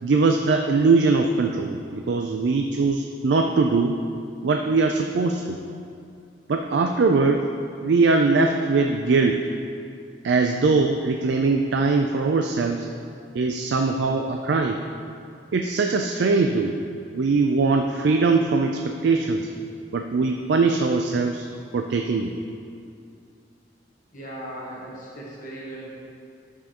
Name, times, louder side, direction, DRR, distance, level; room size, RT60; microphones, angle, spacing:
voice 1, 0.0-4.0 4.4-5.6 6.5-7.5 7.8-9.5 10.2-12.9 13.3-14.8 15.5-16.7 17.1-19.5 19.9-21.5 21.7-22.3, right 3 dB, 65° right, 4 dB, 0.4 m, -21 dB
voice 2, 24.1-25.9, right 1 dB, 45° left, -5 dB, 1.3 m, -37 dB
10.5 x 7.1 x 2.9 m, 2.4 s
head